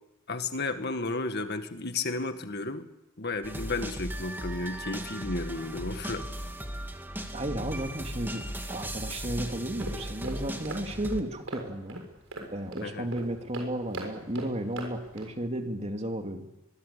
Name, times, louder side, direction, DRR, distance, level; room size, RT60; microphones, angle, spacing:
voice 1, 0.3-2.9 3.2-6.3 12.8-13.1, left 3 dB, 50° left, 8 dB, 1.9 m, -33 dB
sound 1, 3.4-11.2, right 1 dB, 10° right, 2.3 m, -37 dB
voice 2, 7.3-8.4 8.7-12.0 12.5-16.5, right 1 dB, 30° right, 4 dB, 2.7 m, -33 dB
sound 2, 9.6-15.4, right 1 dB, 75° right, 6.8 m, -41 dB
24.0 x 22.0 x 8.5 m, 0.95 s
head